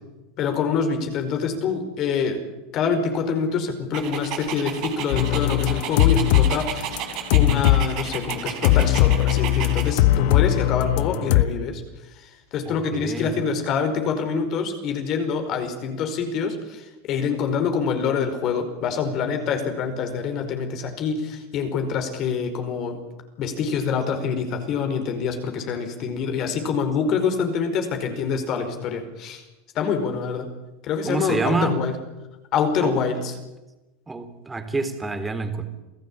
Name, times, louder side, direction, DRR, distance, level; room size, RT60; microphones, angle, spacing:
voice 1, 0.4-2.4 2.7-6.9 7.3-11.8 12.1-23.0 23.4-29.4 29.7-30.5 30.8-31.9 32.5-33.3, left 6 dB, 45° left, 6 dB, 4.9 m, -26 dB
Dog, 3.9-9.9, right 10 dB, 50° right, 3.8 m, -33 dB
sound 1, 5.1-6.5 6.8-7.9 8.3-8.4 8.6-11.4, left 14 dB, 65° left, 1.0 m, -19 dB
voice 2, 12.7-13.3 31.1-31.8 32.8-33.0 34.1-35.7, right 3 dB, 15° right, 8 dB, 3.7 m, -27 dB
28.0 x 16.0 x 8.8 m, 1.1 s
hypercardioid pair, 100°, 0 cm